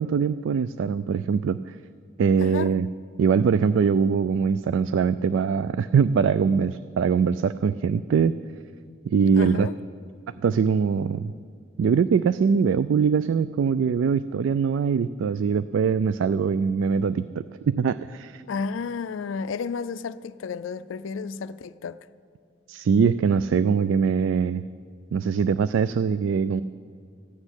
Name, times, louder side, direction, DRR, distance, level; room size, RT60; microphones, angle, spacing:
voice 1, 0.0-1.6 2.2-2.9 3.2-8.4 9.1-9.7 10.4-11.3 11.8-18.4 22.7-24.6 25.1-26.6, right 6 dB, 75° right, 0.3 m, -22 dB
voice 2, 2.4-2.7 9.4-9.7 18.5-22.0, left 5 dB, 75° left, 0.4 m, -32 dB
15.0 x 6.3 x 9.8 m
head